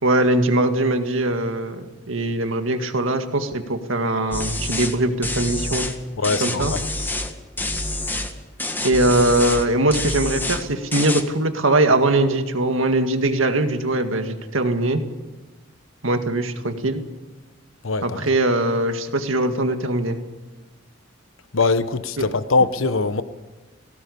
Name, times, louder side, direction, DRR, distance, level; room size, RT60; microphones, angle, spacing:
voice 1, 0.0-5.9 6.4-6.7 8.8-15.0 16.0-17.0 18.0-20.2 22.2-22.3, right 2 dB, 80° right, 1.9 m, -21 dB
sound 1, 4.3-4.9 5.2-5.9 6.2-7.3 7.6-8.3 8.6-9.6 9.9-10.6 10.9-11.2, left 2 dB, 10° left, 1.7 m, -27 dB
voice 2, 6.2-6.9 17.8-18.2 21.5-23.2, left 3 dB, 85° left, 1.0 m, -22 dB
18.5 x 17.5 x 8.5 m
head